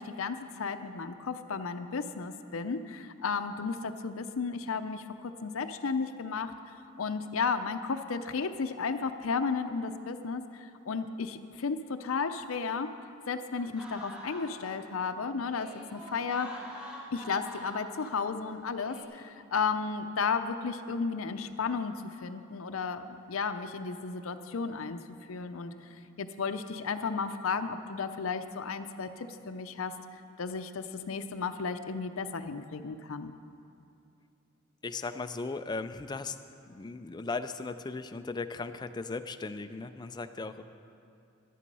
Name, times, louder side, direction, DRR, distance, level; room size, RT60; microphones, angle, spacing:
voice 1, 0.0-6.5 7.0-12.9 13.3-16.5 17.1-25.0 25.3-33.3, left 5 dB, 75° left, 8 dB, 0.6 m, -34 dB
sound 1, 13.5-15.0 15.4-18.4 18.8-19.0, equal, 5° right, 1.3 m, -46 dB
voice 2, 34.8-36.4 36.7-40.6, left 3 dB, 20° left, 9 dB, 0.4 m, -37 dB
11.5 x 11.0 x 5.4 m, 2.6 s
head